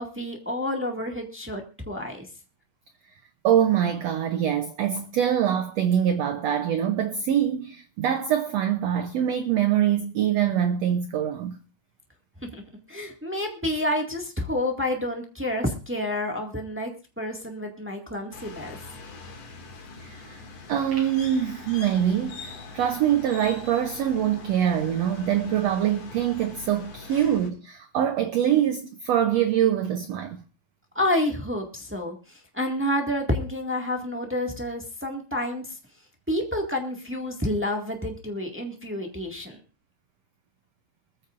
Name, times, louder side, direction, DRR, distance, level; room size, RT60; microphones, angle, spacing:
voice 1, 0.0-2.2 12.4-12.5 12.9-16.9 17.2-18.8 27.1-27.3 30.9-35.8 36.3-39.6, left 1 dB, 15° right, 0.4 m, -29 dB
voice 2, 3.4-11.6 20.0-20.4 20.7-30.4, right 10 dB, 90° right, 1.4 m, -24 dB
sound 1, 18.3-27.5, left 4 dB, 50° left, 3.1 m, -42 dB
21.5 x 14.5 x 2.5 m
omnidirectional pair, 4.0 m